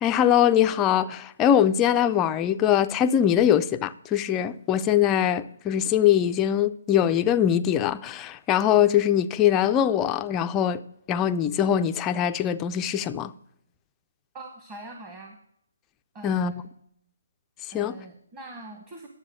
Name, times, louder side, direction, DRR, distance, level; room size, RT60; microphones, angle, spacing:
voice 1, 0.0-10.8 11.1-13.3 16.2-16.5 17.7-18.0, left 10 dB, 15° left, 0.3 m, -22 dB
voice 2, 14.3-15.4 16.1-16.7 17.7-19.1, right 2 dB, 15° right, 1.0 m, -43 dB
10.5 x 7.5 x 6.2 m
hypercardioid pair, 170°, 0 cm